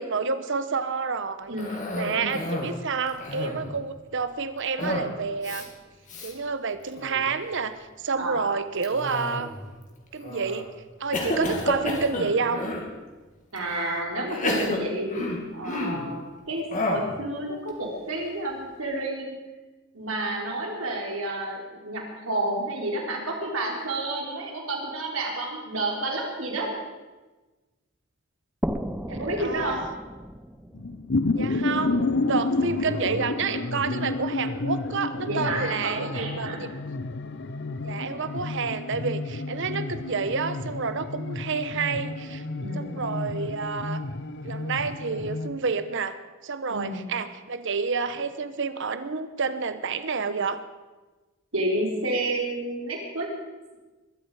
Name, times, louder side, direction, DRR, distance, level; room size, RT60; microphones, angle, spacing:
voice 1, 0.0-1.5 1.9-5.6 6.2-9.5 10.1-10.7 11.0-12.7 29.4-29.8 31.3-36.7 37.8-42.4 42.7-44.0 44.4-46.2 46.4-50.6, right 5 dB, 65° right, 11 dB, 1.1 m, -29 dB
voice 2, 1.5-1.8 2.1-2.4 8.2-8.5 11.4-11.6 13.5-16.6 16.9-19.4 19.9-26.7 29.1-29.8 35.2-36.6 42.6-43.0 46.7-47.1 51.5-53.3, right 1 dB, 85° right, 0 dB, 3.9 m, -30 dB
Cough, 1.6-2.8 3.1-3.7 4.8-5.1 5.4-5.6 6.1-6.3 6.9-7.3 8.8-9.6 10.2-10.6 11.1-12.9 13.6-13.7 14.3-16.1 16.7-17.1, left 1 dB, 40° left, 2.7 m, -30 dB
sound 1, 28.6-32.1, equal, 5° right, 0.7 m, -35 dB
sound 2, 30.7-45.5, left 2 dB, 60° left, 0.8 m, -30 dB
22.5 x 13.0 x 5.0 m, 1.2 s
head